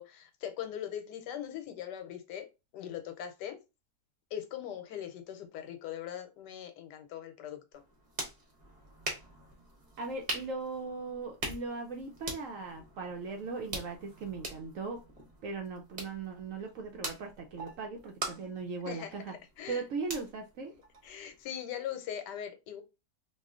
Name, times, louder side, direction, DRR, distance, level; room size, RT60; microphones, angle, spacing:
voice 1, 0.0-2.5 2.7-3.6 4.3-7.6 18.9-19.1 19.6-19.8 21.0-22.8, left 10 dB, 85° left, 1.3 m, -40 dB
sound 1, 7.7-21.4, right 1 dB, 35° right, 0.8 m, -44 dB
voice 2, 10.0-15.0 15.4-19.3 19.7-20.7, right 4 dB, 70° right, 0.8 m, -38 dB
3.0 x 2.4 x 3.5 m
omnidirectional pair, 1.8 m